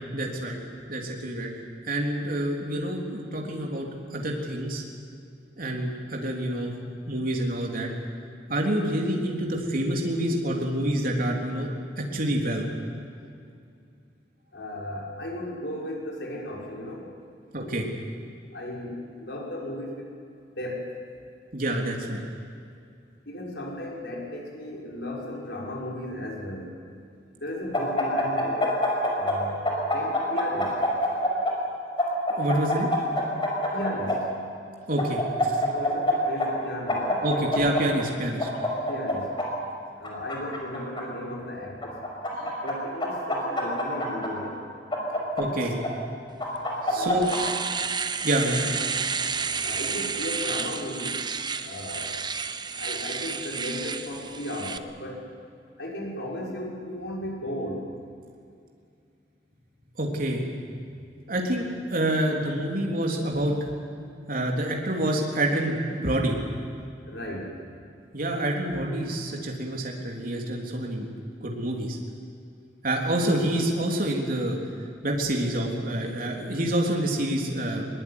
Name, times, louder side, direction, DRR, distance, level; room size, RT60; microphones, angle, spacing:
voice 1, 0.1-0.6 0.9-1.5 1.9-4.8 5.6-6.7 7.1-7.9 8.5-11.7 12.0-12.6 17.5-17.9 21.5-22.2 32.4-32.9 34.9-35.6 37.2-38.5 42.3-42.6 45.4-45.8 46.9-47.3 48.2-48.6 60.0-60.4 61.3-63.5 64.3-66.4 68.1-71.1 71.4-72.0 72.8-74.6 75.0-77.9, right 1 dB, 55° right, 0 dB, 3.6 m, -27 dB
voice 2, 14.5-17.1 18.5-20.1 20.6-20.9 23.2-26.8 27.3-28.7 29.1-30.8 33.7-34.3 35.6-37.2 38.9-39.3 40.0-42.0 42.5-44.6 46.9-47.3 48.6-48.8 49.6-51.2 51.6-52.2 52.7-55.3 55.8-57.9 67.1-67.5, left 1 dB, 70° left, -2 dB, 6.2 m, -35 dB
sound 1, 27.7-29.4 29.7-31.5 32.0-34.2 35.0-36.1 36.4-36.5 36.9-37.8 38.4-39.5 40.0-41.0 41.8-42.7 43.0-44.3 44.9-45.9 46.4-47.4, left 2 dB, 30° left, 5.5 m, -25 dB
Domestic sounds home sounds, 46.6-46.7 47.0-54.8, right 5 dB, 25° right, 0.9 m, -31 dB
22.0 x 21.5 x 9.9 m, 2.4 s
head